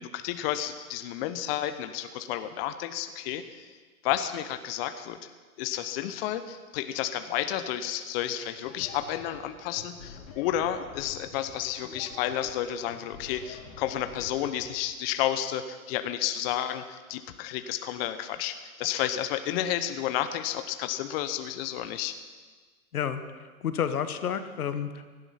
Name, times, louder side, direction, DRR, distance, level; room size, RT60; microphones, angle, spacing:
voice 1, 0.0-3.7 4.0-5.3 5.6-22.1, left 11 dB, 40° left, 10 dB, 1.0 m, -31 dB
sound 1, 8.6-14.7, left 6 dB, 65° left, 2.9 m, -46 dB
voice 2, 23.6-25.1, left 8 dB, 80° left, 10 dB, 1.3 m, -30 dB
17.0 x 12.0 x 5.8 m, 1.4 s
hypercardioid pair, 125°, 43 cm